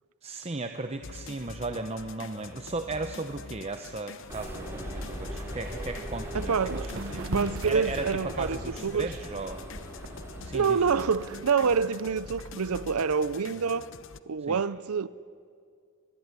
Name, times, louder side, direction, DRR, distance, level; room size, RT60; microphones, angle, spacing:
voice 1, 0.2-7.3 7.6-9.7 10.4-10.8 14.5-14.6, right 2 dB, 30° right, 0.9 m, -36 dB
sound 1, 1.0-14.2, left 4 dB, 60° left, 0.9 m, -45 dB
sound 2, 4.3-11.2, equal, 10° right, 4.5 m, -39 dB
voice 2, 6.3-6.9 7.2-9.1 10.5-13.9 14.3-15.1, right 5 dB, 85° right, 0.6 m, -27 dB
sound 3, 6.4-6.5 6.8-9.5 10.0-12.5, right 1 dB, 65° right, 1.2 m, -38 dB
24.5 x 21.0 x 9.8 m
head